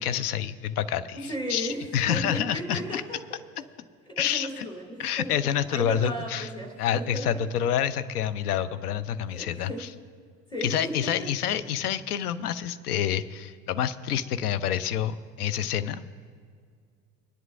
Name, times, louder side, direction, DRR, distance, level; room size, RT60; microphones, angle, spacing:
voice 1, 0.0-1.2 1.5-3.0 4.2-4.7 5.0-6.5 6.8-9.9 10.6-16.0, left 9 dB, 65° left, 13 dB, 0.7 m, -28 dB
voice 2, 1.1-3.2 3.5-3.6 4.1-7.4 9.3-9.8 10.5-11.3, equal, 10° left, 0 dB, 2.4 m, -36 dB
25.0 x 10.5 x 2.5 m, 2.1 s
figure-of-eight pair, 70°, 49 cm